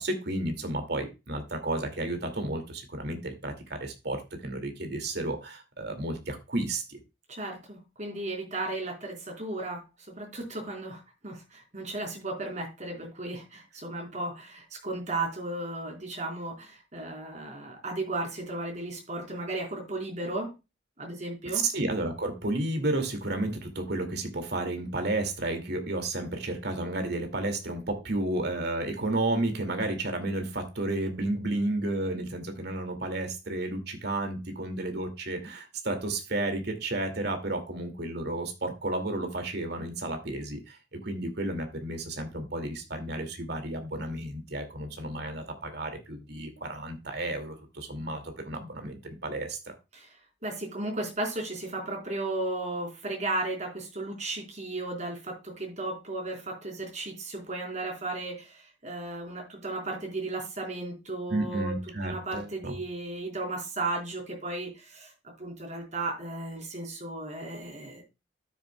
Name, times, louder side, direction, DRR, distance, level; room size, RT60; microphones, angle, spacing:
voice 1, 0.0-7.0 21.5-49.7 61.3-62.7, right 2 dB, 60° right, 6 dB, 2.3 m, -32 dB
voice 2, 7.3-9.8 10.1-20.5 21.0-21.6 49.9-50.1 50.4-61.7 62.0-65.1 65.4-68.0, right 2 dB, 40° right, 1 dB, 4.2 m, -35 dB
12.5 x 7.1 x 2.3 m, 0.25 s
head